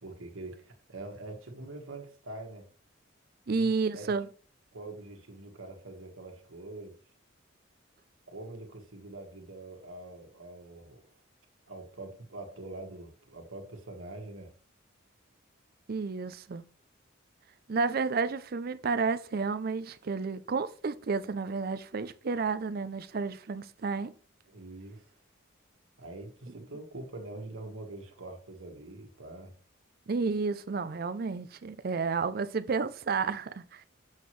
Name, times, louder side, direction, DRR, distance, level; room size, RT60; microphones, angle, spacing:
voice 1, 0.0-2.7 3.5-4.1 4.7-7.0 8.3-11.2 11.7-14.5 24.5-25.1 26.0-29.6, right 2 dB, 80° right, 1.6 m, -44 dB
voice 2, 3.5-4.3 15.9-16.6 17.7-24.1 30.1-33.8, right 4 dB, 45° right, 0.4 m, -31 dB
7.3 x 5.9 x 3.2 m
head